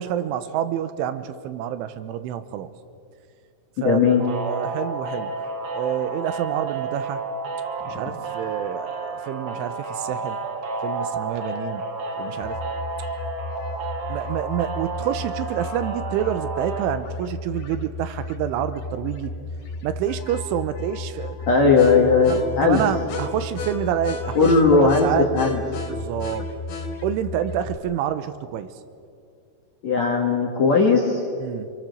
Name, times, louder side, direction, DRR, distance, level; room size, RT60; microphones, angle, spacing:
voice 1, 0.0-2.7 3.8-5.3 5.7-7.2 7.9-10.4 10.8-11.8 12.2-12.6 14.1-19.3 19.8-21.4 22.3-25.3 25.9-26.5 27.0-28.7 31.4-31.7, right 10 dB, 80° right, 11 dB, 3.4 m, -28 dB
voice 2, 3.8-4.2 21.5-22.8 24.4-25.1 25.3-25.6 29.8-31.2, left 4 dB, 50° left, 0 dB, 2.2 m, -17 dB
sound 1, 4.2-17.0, right 3 dB, 55° right, 1.7 m, -31 dB
sound 2, 12.4-27.8, left 3 dB, 70° left, 4.7 m, -33 dB
27.0 x 23.5 x 6.7 m, 2.4 s
omnidirectional pair, 5.6 m